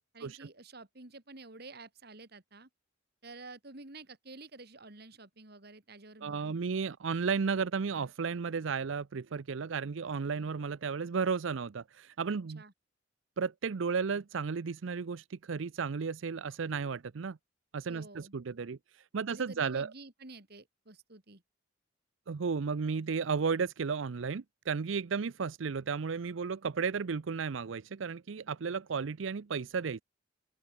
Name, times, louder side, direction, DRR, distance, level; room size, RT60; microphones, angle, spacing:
voice 1, 0.1-2.7 3.2-6.6 12.5-12.7 17.9-18.4 19.3-21.4, right 3 dB, 50° right, 2.5 m, -50 dB
voice 2, 6.2-12.6 13.4-17.4 17.7-19.9 22.3-30.0, right 5 dB, 75° right, 0.5 m, -34 dB
open air
head